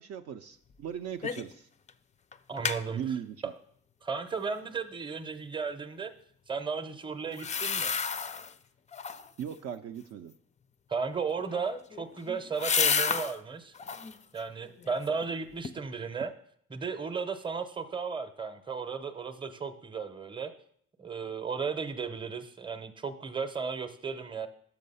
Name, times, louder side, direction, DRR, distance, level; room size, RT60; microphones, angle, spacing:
voice 1, 0.0-1.7 2.9-3.5 9.4-10.3, right 8 dB, 55° right, 6 dB, 0.4 m, -38 dB
sound 1, 1.2-1.6 1.9-2.0 2.3-2.8 7.3-8.5 8.9-9.4 11.4-13.3 13.7-14.2 14.7-15.3 15.6-15.7, left 6 dB, 25° left, 0.3 m, -31 dB
voice 2, 2.5-3.0 4.0-6.1 6.5-7.9 10.9-13.7 14.3-16.3 16.7-20.5 21.0-24.5, right 5 dB, 15° right, 10 dB, 0.7 m, -35 dB
6.2 x 5.7 x 5.4 m, 0.65 s
cardioid pair, 90°, 30 cm